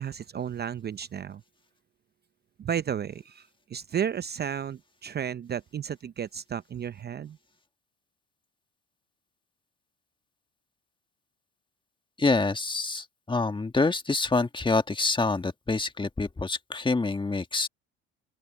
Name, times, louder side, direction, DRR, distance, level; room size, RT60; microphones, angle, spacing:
voice 1, 0.0-1.4 2.6-7.4, right 8 dB, 35° right, 0.7 m, -33 dB
voice 2, 12.2-17.7, left 3 dB, 15° left, 1.7 m, -26 dB
open air
supercardioid pair, 75°, 30 cm